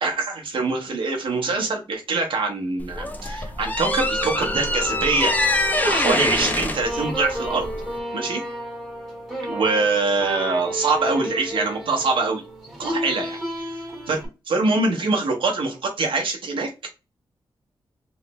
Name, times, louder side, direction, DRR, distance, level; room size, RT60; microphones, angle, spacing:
voice 1, 0.0-5.3 5.8-7.7 8.1-8.4 9.5-12.4 12.8-13.7 14.1-14.2 14.5-16.7, right 3 dB, 75° right, 1 dB, 0.9 m, -24 dB
sound 1, 2.8-8.0, left 2 dB, 20° left, 0.4 m, -24 dB
sound 2, 3.1-14.3, equal, ahead, 1.4 m, -32 dB
3.2 x 3.1 x 3.0 m, 0.28 s
wide cardioid pair, 175°, 9 cm